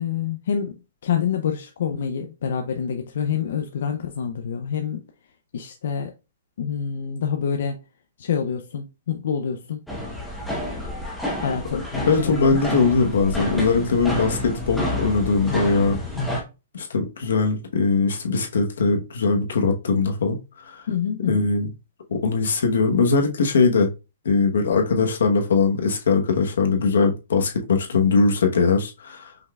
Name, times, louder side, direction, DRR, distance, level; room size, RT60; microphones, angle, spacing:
voice 1, 0.0-5.0 5.5-6.1 6.6-7.8 8.2-9.8 11.4-12.6 20.9-21.5, left 7 dB, 65° left, 0.5 m, -27 dB
sound 1, 9.9-16.4, left 1 dB, ahead, 0.8 m, -29 dB
voice 2, 11.7-16.0 16.7-20.4 20.6-20.8 21.3-21.7 22.1-23.9 24.2-29.3, left 4 dB, 85° left, 0.9 m, -21 dB
5.4 x 3.3 x 2.3 m
hypercardioid pair, 165°, 0 cm